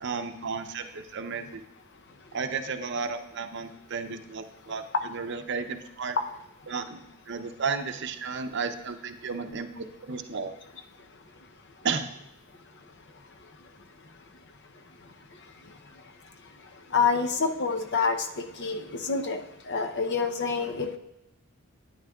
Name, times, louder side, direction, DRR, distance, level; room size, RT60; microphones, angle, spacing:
voice 1, 0.0-1.6 2.3-6.2 6.7-10.5 11.8-12.1, right 5 dB, 55° right, 8 dB, 0.6 m, -33 dB
voice 2, 16.9-19.4 19.7-21.0, left 5 dB, 55° left, 6 dB, 0.7 m, -27 dB
12.5 x 9.3 x 2.3 m, 0.85 s
head